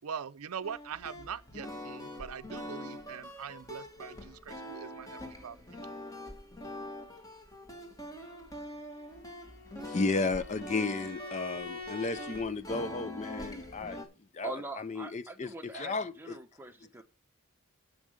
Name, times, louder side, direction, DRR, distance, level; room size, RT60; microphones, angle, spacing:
voice 1, 0.0-5.8, right 7 dB, 85° right, 0.5 m, -42 dB
sound 1, 0.6-14.0, left 1 dB, 15° left, 1.3 m, -44 dB
Bowed string instrument, 8.9-12.5, left 4 dB, 50° left, 2.2 m, -45 dB
voice 2, 9.8-14.0 14.3-16.4, left 3 dB, 30° left, 0.4 m, -33 dB
voice 3, 14.4-17.0, right 2 dB, 10° right, 0.9 m, -43 dB
7.4 x 6.4 x 6.3 m
head